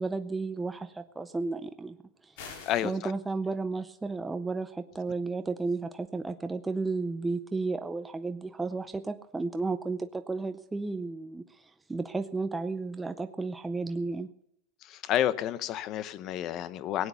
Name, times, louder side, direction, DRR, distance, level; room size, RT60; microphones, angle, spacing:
voice 1, 0.0-2.0 2.2-2.4 2.8-14.3, right 3 dB, 10° right, 9 dB, 0.6 m, -33 dB
sound 1, 2.4-3.0, left 5 dB, 80° left, 5.1 m, -44 dB
voice 2, 2.4-3.1 14.8-17.1, left 11 dB, 40° left, 16 dB, 0.8 m, -30 dB
17.5 x 9.4 x 7.0 m, 0.74 s
supercardioid pair, 145°, 0 cm